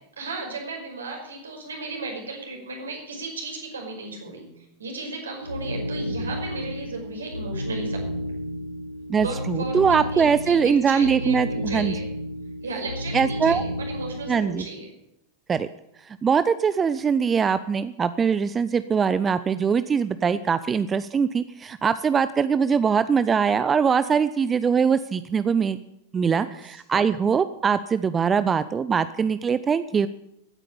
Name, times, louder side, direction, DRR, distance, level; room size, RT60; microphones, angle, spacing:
voice 1, 0.2-4.5 4.8-8.2 9.2-12.1 12.6-14.9 26.2-26.6, right 3 dB, 70° right, 1 dB, 5.2 m, -35 dB
sound 1, 5.4-14.7, equal, 90° right, 0.8 m, -31 dB
voice 2, 9.1-11.9 13.1-13.6 14.3-14.7 15.5-15.7 16.1-25.8 26.1-30.1, right 6 dB, 20° right, 14 dB, 0.6 m, -22 dB
15.5 x 9.9 x 8.7 m, 0.80 s
figure-of-eight pair, 90°, 0 cm